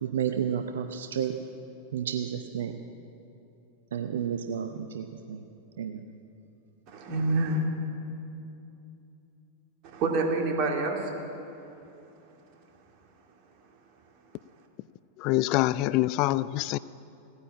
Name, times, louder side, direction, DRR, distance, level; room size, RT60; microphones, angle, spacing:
voice 1, 0.0-1.4 1.9-2.8 3.9-5.5 5.8-6.1, right 8 dB, 60° right, 0.7 m, -31 dB
voice 2, 6.9-7.7 9.8-11.1, right 2 dB, 40° right, 2.5 m, -27 dB
voice 3, 15.2-16.8, left 17 dB, 40° left, 0.3 m, -25 dB
17.0 x 9.8 x 8.8 m
figure-of-eight pair, 90°, 0 cm